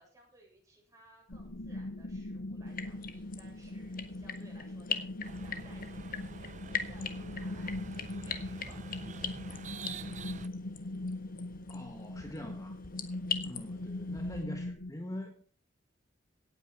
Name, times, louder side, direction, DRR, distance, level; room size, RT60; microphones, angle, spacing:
voice 1, 0.0-5.2 5.4-10.3 13.7-14.1, right 2 dB, 15° right, 7.3 m, -61 dB
sound 1, 1.3-14.9, left 2 dB, 80° left, 1.1 m, -41 dB
sound 2, 2.7-14.4, left 7 dB, 50° left, 1.5 m, -42 dB
sound 3, 5.2-10.5, right 4 dB, 40° right, 0.7 m, -47 dB
voice 2, 11.7-12.8 13.4-15.5, left 1 dB, 20° left, 1.3 m, -43 dB
17.0 x 9.1 x 4.8 m
head